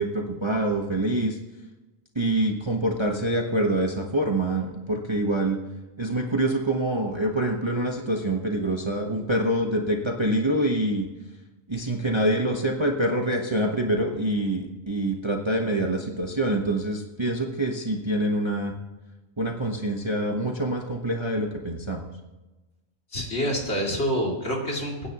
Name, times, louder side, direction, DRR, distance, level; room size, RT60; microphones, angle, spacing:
voice 1, 0.0-1.4 2.1-5.6 6.0-11.1 11.7-18.7 19.4-22.1, right 1 dB, 25° right, 1 dB, 1.0 m, -25 dB
voice 2, 23.1-25.1, equal, 50° left, -2 dB, 2.8 m, -27 dB
22.5 x 9.8 x 2.9 m, 1.1 s
omnidirectional pair, 1.4 m